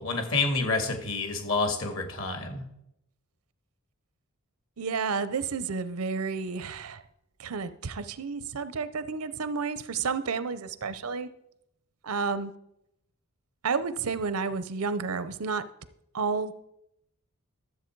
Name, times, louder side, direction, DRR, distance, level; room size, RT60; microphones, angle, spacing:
voice 1, 0.0-2.7, left 3 dB, 65° left, 5 dB, 2.0 m, -28 dB
voice 2, 4.8-7.0 7.4-11.3 12.0-12.5 13.6-15.6 16.1-16.5, right 5 dB, 85° right, 14 dB, 0.6 m, -31 dB
12.5 x 7.5 x 4.6 m, 0.81 s
head